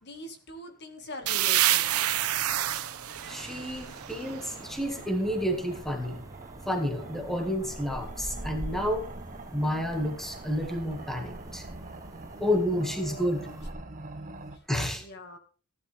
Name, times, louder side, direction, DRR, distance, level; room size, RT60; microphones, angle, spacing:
voice 1, 0.0-1.8 12.4-12.5 12.8-13.6 15.0-15.4, left 1 dB, 50° left, 6 dB, 1.8 m, -43 dB
sound 1, 1.2-14.6, right 2 dB, 40° right, 1.3 m, -45 dB
sound 2, 1.3-4.9, right 13 dB, 75° right, 0.8 m, -28 dB
voice 2, 3.1-6.2 6.7-9.1 9.5-11.7 12.4-13.5 14.7-15.0, equal, ahead, 3 dB, 1.9 m, -30 dB
sound 3, 3.4-13.7, right 1 dB, 15° right, 0.9 m, -45 dB
16.0 x 11.0 x 3.4 m, 0.38 s
head